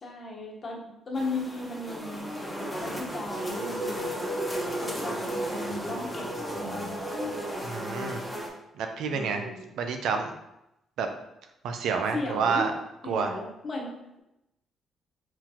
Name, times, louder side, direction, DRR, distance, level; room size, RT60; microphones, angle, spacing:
voice 1, 0.0-4.2 4.8-7.0 9.1-9.7 12.1-12.7 13.0-14.2, left 2 dB, 45° left, -1 dB, 1.1 m, -36 dB
sound 1, 1.1-8.5, equal, ahead, 1.4 m, -36 dB
sound 2, 2.8-7.7, right 1 dB, 60° right, 1.2 m, -36 dB
voice 2, 7.6-8.2 8.8-9.5 9.8-10.3 11.0-11.1 11.6-12.7 13.1-13.3, right 5 dB, 80° right, 5 dB, 0.5 m, -28 dB
4.5 x 3.8 x 2.9 m, 0.87 s
cardioid pair, 90°, 0 cm